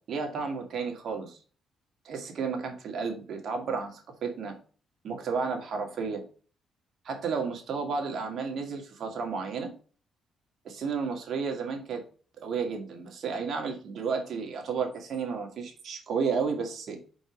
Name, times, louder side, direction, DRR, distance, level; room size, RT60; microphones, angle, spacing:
voice 1, 0.1-1.4 2.0-4.5 5.0-6.2 7.0-9.7 10.6-12.0 12.4-17.0, right 5 dB, 60° right, 3 dB, 2.1 m, -32 dB
5.2 x 4.7 x 6.0 m, 0.39 s
cardioid pair, 90°, 0 cm